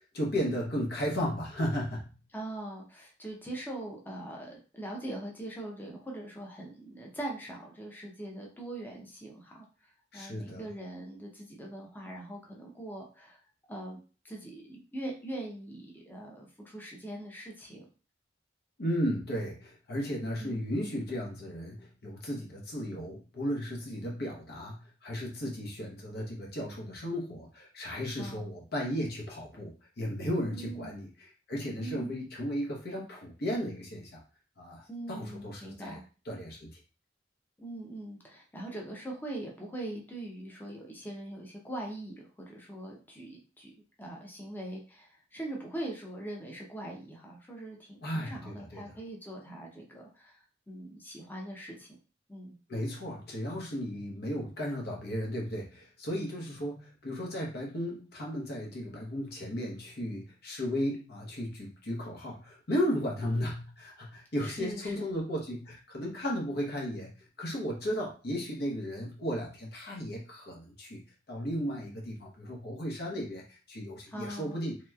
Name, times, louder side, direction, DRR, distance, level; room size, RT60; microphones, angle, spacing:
voice 1, 0.1-2.1 10.1-10.6 18.8-34.2 34.6-36.0 36.3-36.8 48.0-49.0 52.7-67.1 67.4-74.8, equal, 55° left, -1 dB, 0.9 m, -35 dB
voice 2, 2.3-9.7 10.1-13.4 13.7-14.0 14.2-17.8 20.4-20.6 28.2-28.5 30.5-31.0 31.7-32.1 34.9-36.0 37.6-43.7 44.0-50.4 50.7-51.9 52.3-52.6 64.4-65.1 74.1-74.6, right 1 dB, 10° left, -2 dB, 0.7 m, -42 dB
3.1 x 3.0 x 2.3 m, 0.35 s
head